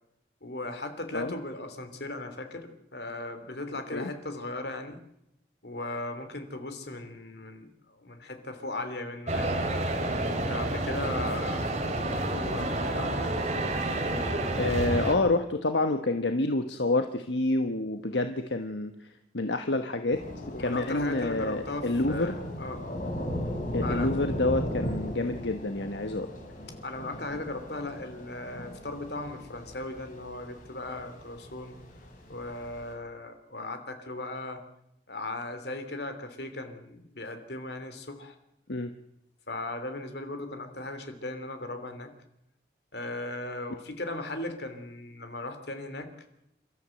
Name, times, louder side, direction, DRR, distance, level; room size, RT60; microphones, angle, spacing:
voice 1, 0.4-5.0 5.6-9.6 10.3-11.8 12.1-13.4 20.5-22.8 23.8-24.1 26.8-31.8 32.3-34.6 35.1-38.4 39.5-42.1 42.9-46.1, left 2 dB, 65° left, 8 dB, 3.0 m, -37 dB
sound 1, 9.3-15.1, right 1 dB, 40° right, 2.9 m, -29 dB
voice 2, 14.6-18.9 19.3-22.4 23.7-26.3 38.7-38.9, left 2 dB, 80° left, 7 dB, 1.2 m, -28 dB
Thunder / Rain, 20.1-32.9, equal, 45° left, 4.8 m, -37 dB
29.0 x 13.5 x 7.8 m, 0.81 s
head